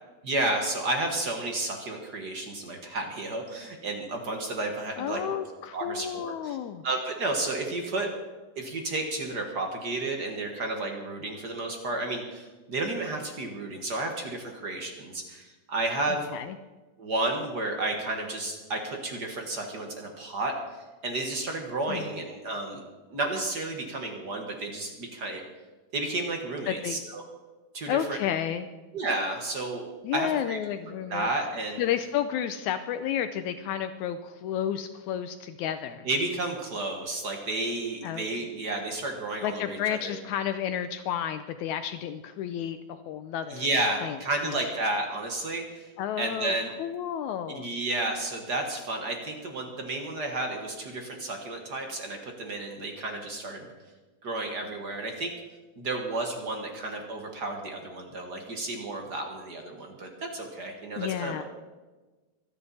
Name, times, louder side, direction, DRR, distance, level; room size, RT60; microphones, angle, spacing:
voice 1, 0.2-5.4 5.7-6.6 6.8-8.1 8.5-16.3 17.0-22.8 23.1-25.4 25.9-27.2 27.7-28.2 28.9-29.8 30.1-30.6 31.1-31.8 36.0-40.2 43.5-45.9 46.2-46.7 47.5-53.7 54.2-55.3 55.8-61.4, right 2 dB, 50° right, 3 dB, 1.3 m, -32 dB
voice 2, 5.0-6.8 16.3-16.6 21.9-22.0 26.7-27.0 27.9-28.7 30.0-31.3 31.8-36.0 38.0-38.3 39.4-43.7 44.0-44.2 44.4-44.7 46.0-46.5 46.8-47.7 61.0-61.4, left 10 dB, 85° left, 10 dB, 1.7 m, -31 dB
24.5 x 10.0 x 4.2 m, 1.2 s
omnidirectional pair, 4.0 m